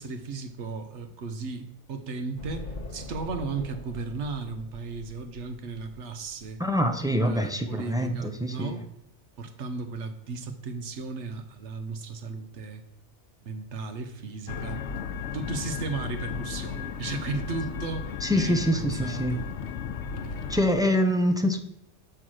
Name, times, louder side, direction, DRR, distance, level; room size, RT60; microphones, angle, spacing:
voice 1, 0.0-6.6 7.2-8.9 9.4-12.8 13.4-14.8 15.3-19.4 20.2-20.6, right 4 dB, 80° right, 1.1 m, -35 dB
sound 1, 2.4-7.3, left 2 dB, 45° left, 1.1 m, -42 dB
voice 2, 6.6-8.8 18.2-19.4 20.5-21.6, equal, 5° right, 0.3 m, -25 dB
sound 2, 14.5-20.6, left 6 dB, 90° left, 0.9 m, -34 dB
6.8 x 5.7 x 6.2 m
omnidirectional pair, 1.2 m